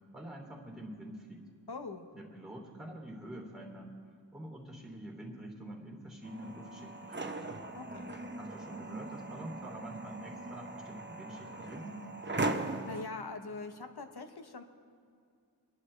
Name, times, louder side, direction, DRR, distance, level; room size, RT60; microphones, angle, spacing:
voice 1, 0.1-1.4 2.1-3.9 4.3-7.6 8.3-12.0, right 1 dB, ahead, -1 dB, 2.9 m, -46 dB
voice 2, 1.7-2.1 7.7-8.1 12.9-14.6, left 3 dB, 60° left, 7 dB, 1.1 m, -42 dB
sound 1, 6.2-13.0, right 2 dB, 25° right, 0.8 m, -39 dB
24.5 x 11.0 x 3.3 m, 2.3 s
wide cardioid pair, 75°, 43 cm